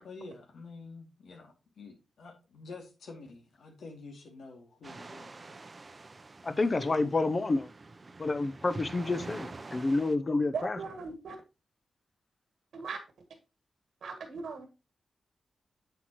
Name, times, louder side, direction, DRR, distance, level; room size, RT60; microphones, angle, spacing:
voice 1, 0.0-5.6 6.7-7.2, left 3 dB, 85° left, 2.5 m, -48 dB
sound 1, 4.8-10.2, right 3 dB, 30° right, 0.7 m, -46 dB
voice 2, 6.4-7.7 8.2-10.8, left 3 dB, 35° left, 0.7 m, -29 dB
voice 3, 10.5-11.4 12.7-13.0 14.0-14.7, right 5 dB, 85° right, 1.6 m, -38 dB
8.1 x 7.7 x 3.0 m
wide cardioid pair, 110°, 0 cm